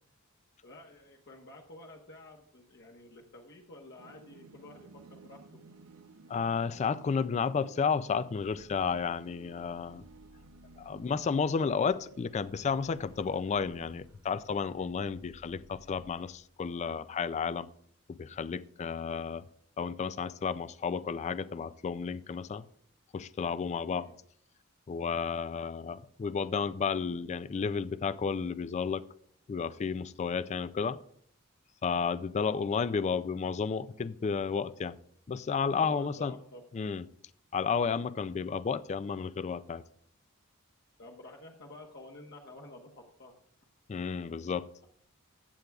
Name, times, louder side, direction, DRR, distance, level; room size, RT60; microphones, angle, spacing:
voice 1, 0.6-5.6 23.9-24.2 35.8-36.7 41.0-43.3, left 2 dB, 55° left, -1 dB, 1.1 m, -51 dB
sound 1, 4.0-14.7, right 4 dB, 80° right, 0.6 m, -57 dB
voice 2, 6.3-10.0 10.8-17.7 18.2-19.4 19.8-22.6 23.1-24.1 24.9-29.0 29.5-31.0 31.8-34.9 35.3-36.3 36.7-37.0 37.5-39.8 43.9-44.7, left 5 dB, 30° left, 15 dB, 0.3 m, -32 dB
sound 2, 8.4-16.1, left 3 dB, 80° left, 4.9 m, -61 dB
14.5 x 9.1 x 2.3 m, 0.64 s
head